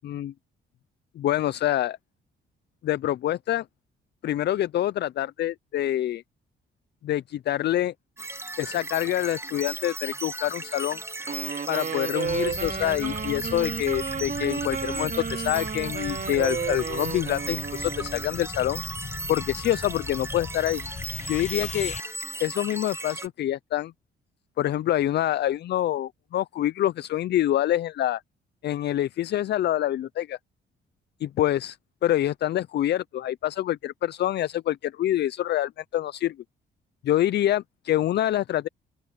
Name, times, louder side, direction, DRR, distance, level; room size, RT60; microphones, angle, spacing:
voice 1, 0.0-0.3 1.2-2.0 2.8-3.6 4.2-6.2 7.0-7.9 8.6-11.0 11.7-18.8 19.3-20.8 21.3-21.9 22.4-23.9 24.6-28.2 28.6-30.4 31.2-31.8 32.0-36.4 37.0-38.7, left 12 dB, 60° left, 0.5 m, -26 dB
sound 1, 8.2-23.3, right 2 dB, 10° right, 1.1 m, -36 dB
Wind instrument woodwind instrument, 11.2-18.4, right 6 dB, 45° right, 2.6 m, -33 dB
sound 2, 12.2-22.0, left 6 dB, 35° left, 0.9 m, -39 dB
open air
cardioid pair, 90°, 20 cm